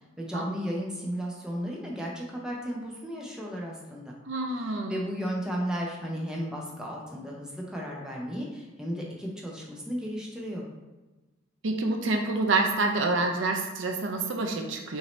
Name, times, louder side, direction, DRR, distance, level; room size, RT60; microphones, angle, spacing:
voice 1, 0.2-4.1 4.9-10.6, equal, 5° right, -3 dB, 0.6 m, -34 dB
voice 2, 4.3-5.2 11.6-15.0, right 3 dB, 65° right, 3 dB, 0.5 m, -27 dB
6.0 x 2.7 x 3.1 m, 1.1 s
head